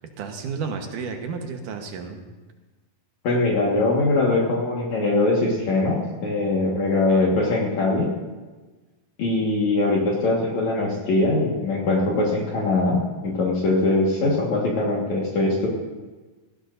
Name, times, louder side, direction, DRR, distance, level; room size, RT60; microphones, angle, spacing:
voice 1, 0.2-2.2 7.1-7.4, right 5 dB, 65° right, 4 dB, 2.5 m, -32 dB
voice 2, 3.2-8.1 9.2-15.7, left 2 dB, 55° left, -3 dB, 2.7 m, -22 dB
18.5 x 15.5 x 2.6 m, 1.3 s
omnidirectional pair, 4.3 m